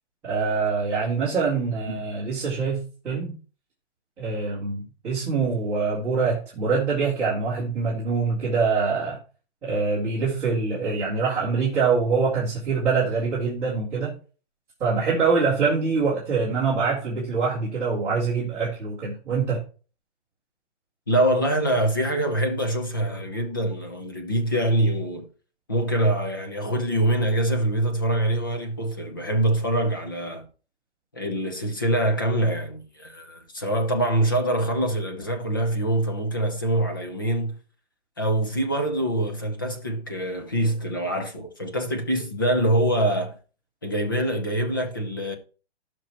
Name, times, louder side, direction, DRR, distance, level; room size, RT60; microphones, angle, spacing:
voice 1, 0.2-3.3 4.2-9.2 9.6-14.2 14.8-19.6, right 4 dB, 5° right, 1.9 m, -24 dB
voice 2, 21.1-25.3 25.7-30.5 31.1-37.6 38.2-43.3 43.8-45.4, right 1 dB, 20° left, 0.7 m, -24 dB
15.5 x 6.0 x 3.0 m
hypercardioid pair, 180°, 34 cm